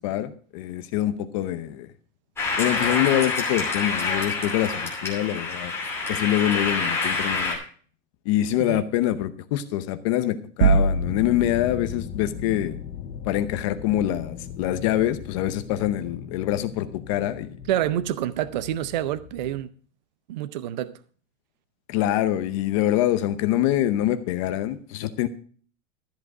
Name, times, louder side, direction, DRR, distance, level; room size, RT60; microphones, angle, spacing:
voice 1, 0.0-1.9 2.6-5.7 6.1-7.6 8.3-12.8 13.2-17.6 21.9-25.3, left 13 dB, 25° left, 0.8 m, -25 dB
sound 1, 2.4-7.5, left 4 dB, 5° left, 2.8 m, -27 dB
sound 2, 10.6-11.6, right 4 dB, 55° right, 2.0 m, -20 dB
sound 3, 11.0-19.6, left 8 dB, 65° left, 2.5 m, -38 dB
voice 2, 17.7-19.7 20.3-20.9, right 12 dB, 35° right, 0.6 m, -27 dB
13.5 x 7.7 x 4.8 m
supercardioid pair, 175°, 38 cm